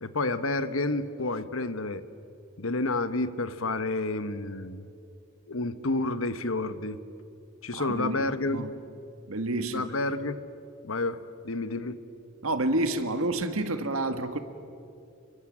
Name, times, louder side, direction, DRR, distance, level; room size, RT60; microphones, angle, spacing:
voice 1, 0.0-2.0 2.6-4.9 5.5-7.0 7.6-8.6 9.7-10.4 10.8-11.2 11.4-12.0, left 2 dB, 75° left, 12 dB, 1.2 m, -30 dB
voice 2, 7.7-8.7 9.3-9.9 12.4-14.4, right 2 dB, 85° right, 9 dB, 1.8 m, -29 dB
29.5 x 23.0 x 7.4 m, 2.6 s
head